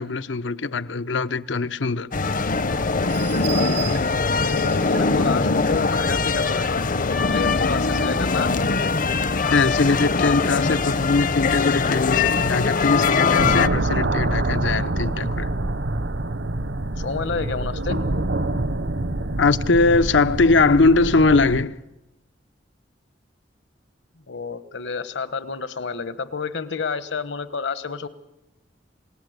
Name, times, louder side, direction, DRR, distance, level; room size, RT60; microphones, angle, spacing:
voice 1, 0.0-2.1 9.5-15.5 19.4-21.8, left 3 dB, 90° left, 0.8 m, -21 dB
sound 1, 2.1-13.7, left 4 dB, 50° left, 0.7 m, -21 dB
sound 2, 3.0-7.5 8.0-8.1 8.5-8.6, right 10 dB, 85° right, 2.0 m, -38 dB
voice 2, 4.4-6.8 7.3-8.5 17.0-18.0 24.3-28.1, left 5 dB, 70° left, 1.2 m, -29 dB
sound 3, 13.4-21.6, right 2 dB, 70° right, 1.0 m, -26 dB
28.5 x 18.0 x 8.0 m
head